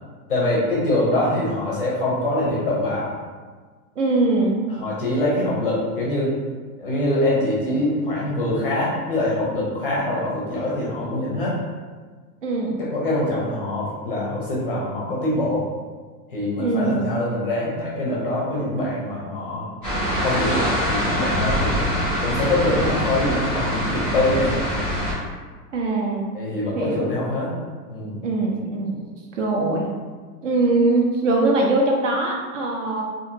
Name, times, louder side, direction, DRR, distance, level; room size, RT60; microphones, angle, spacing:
voice 1, 0.3-3.1 4.8-6.4 6.8-11.5 12.8-15.7 16.3-19.7 20.2-21.9 22.2-24.6 26.3-27.5 27.9-28.2, left 1 dB, 40° left, -5 dB, 0.5 m, -24 dB
voice 2, 4.0-4.6 12.4-12.8 16.6-17.1 25.7-26.3 26.7-27.1 28.2-29.1 29.3-29.9 30.4-33.0, right 2 dB, 55° right, 0 dB, 0.5 m, -22 dB
sound 1, 19.8-25.1, equal, 5° left, 0.8 m, -24 dB
2.8 x 2.6 x 2.5 m, 1.5 s
supercardioid pair, 180°, 47 cm